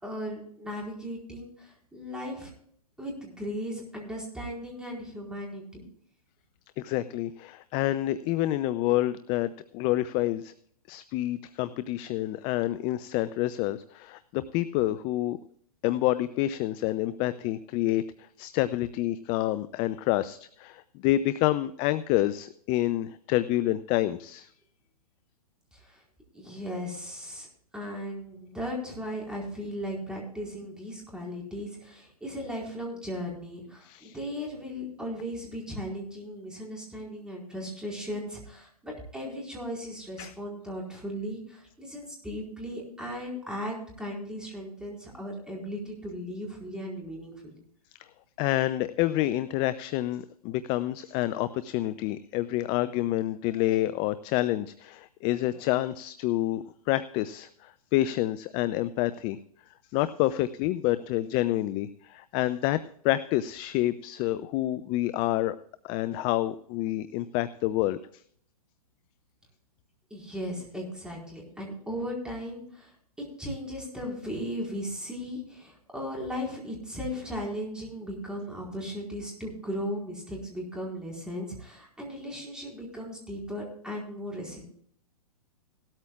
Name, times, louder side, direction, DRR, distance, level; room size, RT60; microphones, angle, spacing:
voice 1, 0.0-2.5 3.0-5.8 25.7-26.0 26.3-27.5 27.7-47.6 70.1-72.9 73.4-84.6, equal, 5° right, -2 dB, 4.5 m, -37 dB
voice 2, 6.8-10.5 10.9-15.4 15.8-18.0 18.4-24.5 33.8-34.2 40.2-40.3 48.4-59.4 59.9-65.6 65.8-68.2, left 15 dB, 25° left, 14 dB, 0.5 m, -28 dB
17.5 x 13.0 x 2.4 m, 0.62 s
figure-of-eight pair, 120°, 19 cm